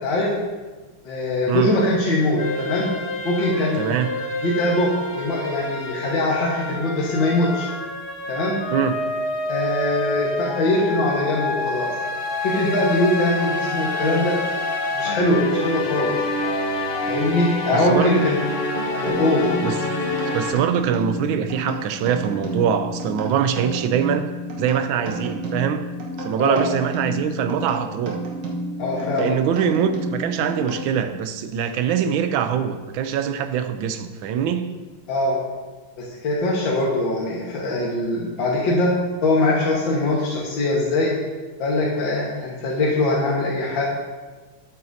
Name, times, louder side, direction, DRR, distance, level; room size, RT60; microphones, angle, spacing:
voice 1, 0.0-0.3 1.0-2.9 3.2-3.8 4.4-7.7 8.3-8.6 9.5-11.9 12.4-14.4 14.9-16.2 17.1-18.4 18.9-19.5 26.4-26.6 28.8-29.3 35.1-35.4 36.0-38.9 39.2-41.1 41.6-43.8, left 2 dB, 60° left, -5 dB, 2.2 m, -22 dB
sound 1, 2.4-20.5, left 2 dB, 45° left, 0.8 m, -27 dB
voice 2, 3.7-4.1 8.7-9.0 17.7-18.3 19.6-19.8 20.3-24.3 24.6-25.9 26.2-28.2 29.2-34.7, right 8 dB, 75° right, 9 dB, 1.3 m, -23 dB
sound 2, 19.1-31.2, right 1 dB, 55° right, 1.9 m, -31 dB
12.5 x 8.3 x 2.7 m, 1.3 s
omnidirectional pair, 2.4 m